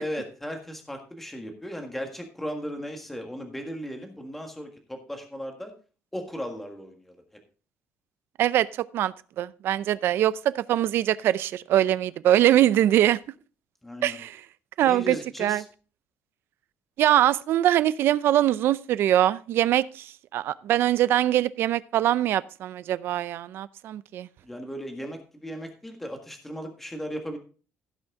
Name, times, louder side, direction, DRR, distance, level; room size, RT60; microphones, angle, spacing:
voice 1, 0.0-5.7 6.1-7.1 13.8-14.2 14.8-15.6 24.4-27.4, equal, 5° left, 1.6 m, -36 dB
voice 2, 8.9-13.2 14.0-14.4 14.8-15.6 17.0-24.3, right 12 dB, 55° right, 0.5 m, -23 dB
16.0 x 6.2 x 3.7 m
cardioid pair, 180°, 5 cm